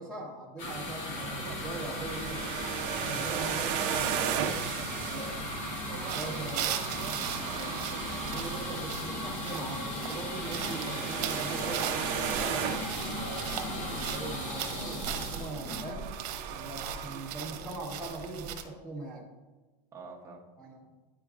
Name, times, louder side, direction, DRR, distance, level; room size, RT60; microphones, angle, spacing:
voice 1, 0.0-2.6 3.1-3.7 4.0-4.1 5.1-5.4 6.0-6.8 8.0-12.7 13.1-16.1 16.5-19.3 20.6-20.8, right 2 dB, 5° left, -5 dB, 1.2 m, -41 dB
sound 1, 0.6-16.3, left 1 dB, 50° left, 1.7 m, -37 dB
sound 2, 1.3-18.5, right 9 dB, 40° right, 0.6 m, -37 dB
voice 2, 3.4-4.7 7.4-7.7 19.9-20.4, right 3 dB, 15° right, -1 dB, 0.9 m, -43 dB
sound 3, 6.1-18.6, right 10 dB, 70° right, 0.9 m, -39 dB
10.5 x 4.5 x 2.5 m, 1.2 s
supercardioid pair, 150°, 21 cm